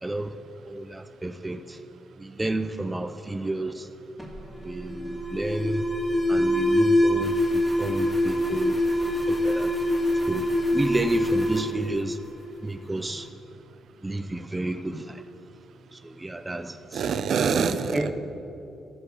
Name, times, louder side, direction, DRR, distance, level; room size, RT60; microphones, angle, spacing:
voice 1, 0.0-0.3 0.6-1.8 2.2-3.9 4.6-5.8 6.3-8.8 9.3-9.7 10.3-10.5 10.7-12.2 12.6-13.3 14.0-15.2 15.9-17.0 17.9-18.1, right 2 dB, 15° right, 8 dB, 0.6 m, -31 dB
Alarm, 4.2-12.8, left 1 dB, 5° left, 2.8 m, -25 dB
voice 2, 16.9-18.1, right 6 dB, 60° right, 10 dB, 0.8 m, -25 dB
11.5 x 7.9 x 7.9 m, 2.9 s
cardioid pair, 90°, 0 cm